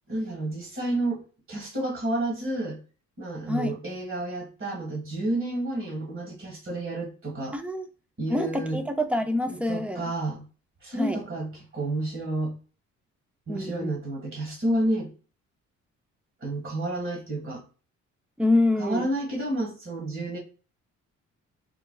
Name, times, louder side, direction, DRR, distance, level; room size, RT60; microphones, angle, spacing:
voice 1, 0.1-1.2 1.5-2.8 3.2-7.5 8.2-8.8 9.5-10.4 10.8-12.5 13.5-15.1 16.4-17.6 18.8-20.4, right 1 dB, 45° right, 1.7 m, -30 dB
voice 2, 7.5-7.9 8.3-10.1 11.0-11.2 13.5-13.9 18.4-19.1, left 1 dB, 5° right, 0.5 m, -26 dB
4.8 x 2.2 x 2.3 m
cardioid pair, 90°, 30 cm